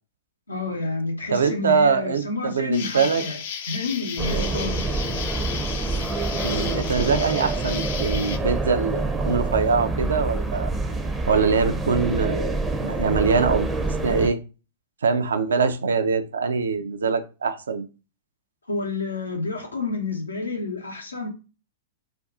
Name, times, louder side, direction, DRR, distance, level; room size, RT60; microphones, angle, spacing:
voice 1, 0.5-3.4 3.7-4.8 18.7-21.3, left 3 dB, 90° left, 0.7 m, -29 dB
voice 2, 1.3-3.2 6.4-10.7 11.3-12.6 12.8-13.7 14.0-14.4 15.0-17.9, right 5 dB, 75° right, 0.4 m, -23 dB
Insect, 2.7-8.4, left 7 dB, 60° left, 0.4 m, -34 dB
sound 1, 4.2-14.3, right 2 dB, 15° right, 0.5 m, -27 dB
2.5 x 2.3 x 3.6 m
figure-of-eight pair, 105°, 0 cm